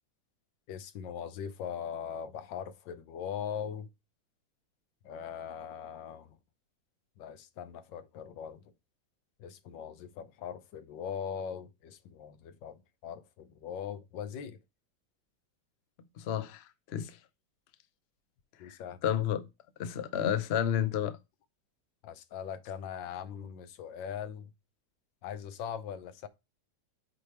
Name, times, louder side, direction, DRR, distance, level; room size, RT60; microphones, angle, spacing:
voice 1, 0.7-3.9 5.0-6.3 7.2-8.6 9.4-14.6 18.6-19.0 22.0-24.5 25.2-26.3, left 8 dB, 90° left, 1.4 m, -40 dB
voice 2, 16.2-17.2 18.6-18.7 19.0-19.5 19.8-21.2, left 10 dB, 70° left, 0.6 m, -31 dB
8.2 x 3.4 x 4.3 m
omnidirectional pair, 2.0 m